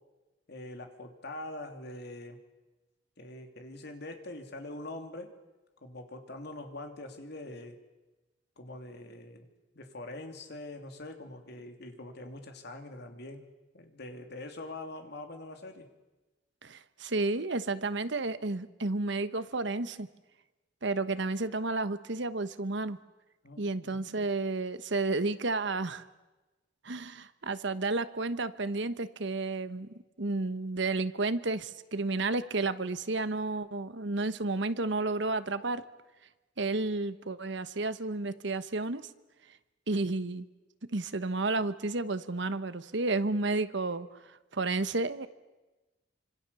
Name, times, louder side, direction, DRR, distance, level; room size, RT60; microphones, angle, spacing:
voice 1, 0.5-2.4 3.2-5.3 5.8-7.8 8.6-9.5 9.7-13.5 13.7-15.9 23.4-24.0, left 2 dB, 60° left, 5 dB, 3.1 m, -43 dB
voice 2, 16.6-20.1 20.8-23.0 23.6-26.0 26.8-29.9 30.2-35.8 36.6-39.0 39.9-40.5 40.9-44.1 44.5-45.3, right 3 dB, 70° right, 12 dB, 1.2 m, -31 dB
26.0 x 26.0 x 7.0 m, 1.1 s
head